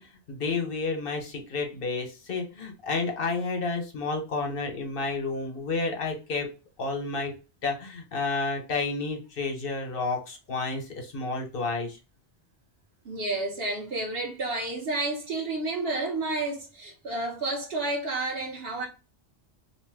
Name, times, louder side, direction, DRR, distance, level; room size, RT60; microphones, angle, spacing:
voice 1, 0.0-6.5 6.8-7.3 7.6-12.0, left 3 dB, 55° left, 1.0 m, -30 dB
voice 2, 13.0-18.9, right 2 dB, 60° right, 1.0 m, -30 dB
2.8 x 2.1 x 3.3 m
omnidirectional pair, 1.2 m